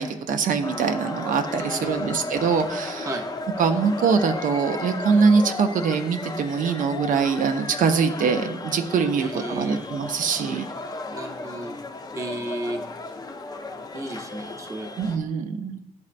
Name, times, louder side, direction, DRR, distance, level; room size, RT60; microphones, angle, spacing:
voice 1, 0.0-3.1 3.6-10.7 15.0-15.8, right 5 dB, 80° right, 7 dB, 0.5 m, -23 dB
sound 1, 0.6-15.2, left 2 dB, 30° left, 0.5 m, -34 dB
voice 2, 1.6-2.3 3.1-3.2 9.2-9.8 11.1-11.8 12.1-12.8 13.9-14.9, right 1 dB, 25° right, 2 dB, 0.6 m, -33 dB
10.5 x 4.2 x 2.5 m, 0.94 s
wide cardioid pair, 145°, 14 cm